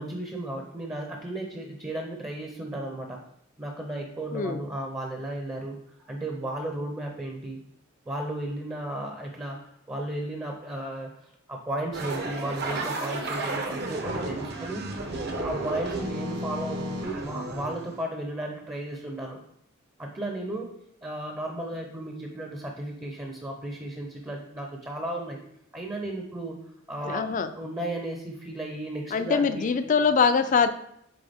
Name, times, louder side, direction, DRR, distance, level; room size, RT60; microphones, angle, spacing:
voice 1, 0.0-3.2 3.6-5.8 6.1-7.6 8.1-9.6 9.9-14.9 15.4-19.4 20.0-20.7 21.0-25.4 25.7-26.6 26.9-27.2 27.5-29.7, right 1 dB, 15° right, 1 dB, 0.6 m, -34 dB
voice 2, 4.3-4.6 27.0-27.5 29.1-30.7, left 5 dB, 40° left, 11 dB, 0.4 m, -23 dB
sound 1, 11.9-18.0, right 2 dB, 55° right, 0.8 m, -32 dB
7.8 x 3.6 x 3.5 m, 0.76 s
head